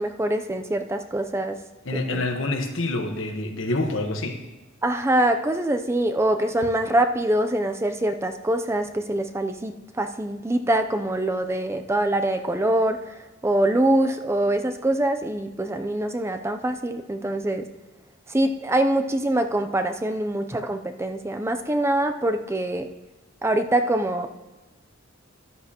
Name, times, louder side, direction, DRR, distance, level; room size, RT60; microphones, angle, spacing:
voice 1, 0.0-1.6 1.9-2.3 4.8-13.2 13.4-17.7 18.3-22.9 23.4-24.3, right 1 dB, 15° right, 7 dB, 0.5 m, -24 dB
voice 2, 1.8-4.4, left 2 dB, 65° left, 4 dB, 1.3 m, -27 dB
13.0 x 10.5 x 2.9 m, 1.1 s
head